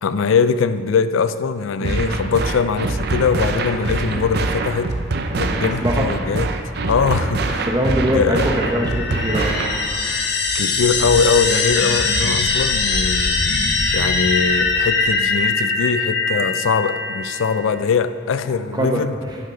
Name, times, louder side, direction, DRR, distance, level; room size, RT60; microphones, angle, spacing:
voice 1, 0.0-4.9 5.4-6.5 6.9-7.7 8.1-8.5 10.5-13.6 13.9-19.1, left 5 dB, 80° left, 13 dB, 0.4 m, -21 dB
sound 1, 1.8-9.8, right 3 dB, 50° right, 0.6 m, -24 dB
voice 2, 5.3-6.1 7.4-10.0 18.5-19.4, equal, 20° right, 1 dB, 0.9 m, -23 dB
sound 2, 8.3-17.6, left 3 dB, 55° left, 1.1 m, -21 dB
8.8 x 6.8 x 5.6 m, 2.1 s
head